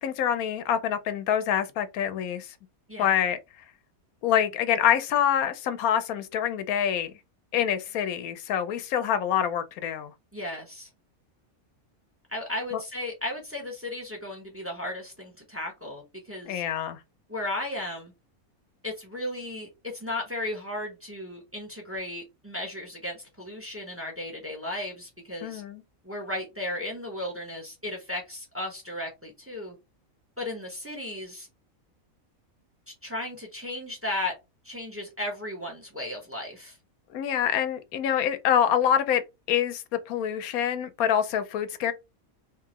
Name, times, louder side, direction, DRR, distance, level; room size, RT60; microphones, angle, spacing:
voice 1, 0.0-2.5 3.0-3.4 4.2-7.1 7.5-10.1 16.5-17.0 25.4-25.8 37.1-39.2 39.5-41.9, left 9 dB, 80° left, 1.1 m, -26 dB
voice 2, 10.3-10.9 12.3-16.6 17.3-18.1 18.8-25.6 26.0-29.7 30.4-31.5 32.9-34.3 34.6-36.8, left 1 dB, 10° right, 1.1 m, -35 dB
3.7 x 3.0 x 3.0 m
omnidirectional pair, 1.5 m